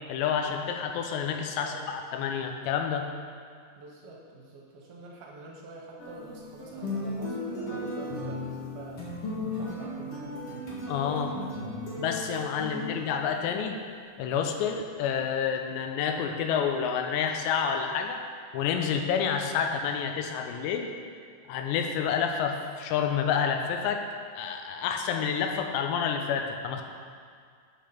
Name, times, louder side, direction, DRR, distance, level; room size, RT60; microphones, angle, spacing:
voice 1, 0.1-3.1 10.9-11.4 12.0-13.8 14.2-18.2 18.5-20.9 21.5-24.0 24.3-26.8, left 7 dB, 90° left, 4 dB, 2.9 m, -29 dB
voice 2, 1.6-1.9 3.8-10.6 11.4-11.8 12.6-13.0 19.4-19.7, right 3 dB, 75° right, -2 dB, 2.5 m, -47 dB
sound 1, 6.0-13.4 14.1-14.2, left 1 dB, 55° left, 1.8 m, -36 dB
8.7 x 5.2 x 5.8 m, 2.1 s
omnidirectional pair, 4.9 m